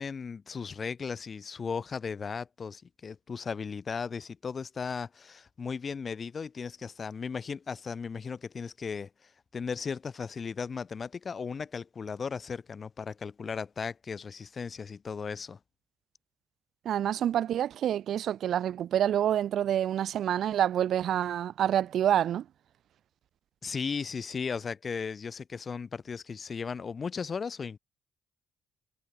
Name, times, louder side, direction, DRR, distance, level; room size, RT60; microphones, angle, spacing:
voice 1, 0.0-15.6 23.6-27.8, left 5 dB, 40° left, 1.8 m, -36 dB
voice 2, 16.9-22.4, right 10 dB, 70° right, 0.5 m, -27 dB
cardioid pair, 90°, 0 cm